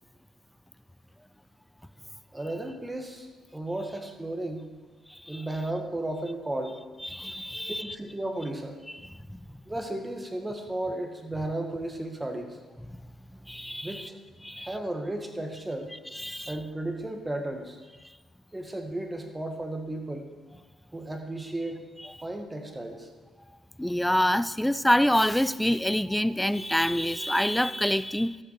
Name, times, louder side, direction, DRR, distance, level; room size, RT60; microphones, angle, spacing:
voice 1, 2.3-4.7 5.3-6.8 7.7-8.8 9.7-12.6 13.8-14.2 14.5-15.9 16.5-17.8 18.5-20.3 20.9-21.8 22.2-23.1, right 1 dB, 15° right, 4 dB, 1.7 m, -34 dB
voice 2, 5.1-5.5 7.0-8.0 9.0-9.4 13.5-14.1 14.4-14.7 16.1-16.6 22.0-22.1 23.8-28.4, left 1 dB, 5° left, 16 dB, 0.4 m, -26 dB
13.0 x 8.5 x 4.7 m, 1.2 s
supercardioid pair, 65°, 0 cm